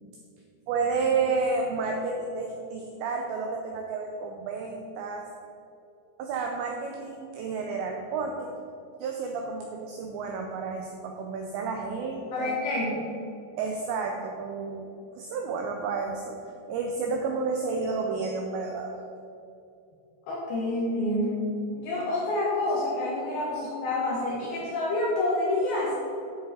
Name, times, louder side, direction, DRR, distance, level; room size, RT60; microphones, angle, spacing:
voice 1, 0.7-5.3 6.2-8.5 9.0-12.6 13.6-18.9 23.5-23.6, right 4 dB, 85° right, 2 dB, 2.5 m, -31 dB
voice 2, 12.3-13.0 20.3-21.4 21.8-25.9, left 1 dB, 70° left, -5 dB, 2.4 m, -28 dB
10.0 x 7.4 x 4.3 m, 2.6 s
omnidirectional pair, 5.9 m